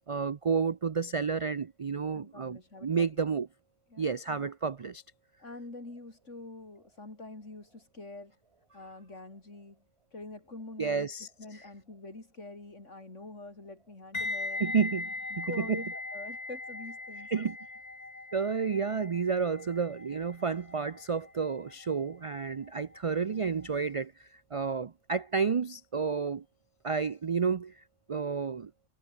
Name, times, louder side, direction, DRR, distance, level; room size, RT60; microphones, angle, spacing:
voice 1, 0.1-3.5 4.0-5.0 10.8-11.3 14.6-15.8 17.3-17.6 18.3-24.1 24.5-26.4 26.8-27.7 28.1-28.7, right 5 dB, 55° right, 0.3 m, -30 dB
voice 2, 2.1-3.2 3.9-4.5 5.4-8.3 8.7-9.8 10.1-14.6 15.3-17.3, left 2 dB, 65° left, 4.7 m, -46 dB
sound 1, 14.1-23.1 23.4-23.7, left 3 dB, 30° left, 2.0 m, -40 dB
omnidirectional pair, 1.3 m